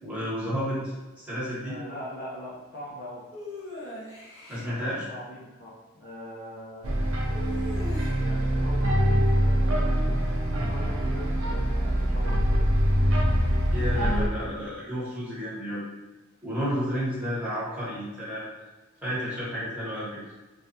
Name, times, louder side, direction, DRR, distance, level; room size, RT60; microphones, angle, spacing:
voice 1, 0.0-1.8 4.5-5.1 13.7-15.8 16.4-18.5 19.0-20.2, equal, 5° right, -10 dB, 1.1 m, -31 dB
voice 2, 1.6-3.2 4.6-6.9 8.1-12.6 18.3-18.4, equal, 45° left, -6 dB, 0.6 m, -42 dB
sound 1, 3.3-4.7 7.3-8.4, left 1 dB, 85° left, 1.5 m, -40 dB
sound 2, 6.8-14.3, equal, 85° right, 0.5 m, -24 dB
3.3 x 2.3 x 2.7 m, 1.2 s
head